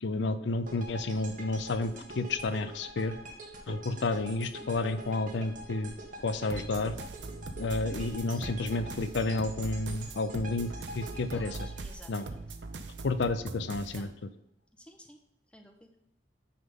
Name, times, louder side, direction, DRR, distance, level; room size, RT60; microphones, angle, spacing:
voice 1, 0.0-3.2 3.7-5.9 6.2-7.0 7.6-11.6 12.1-12.3 13.0-14.1, left 3 dB, 80° left, 11 dB, 0.5 m, -31 dB
sound 1, 0.6-12.8, right 1 dB, 45° right, 1.5 m, -45 dB
sound 2, 6.5-14.1, right 3 dB, 90° right, 0.7 m, -41 dB
voice 2, 11.3-12.4 13.9-14.1 14.7-15.2 15.5-15.9, left 1 dB, 5° left, 4 dB, 0.8 m, -53 dB
9.4 x 3.7 x 5.3 m, 0.82 s
head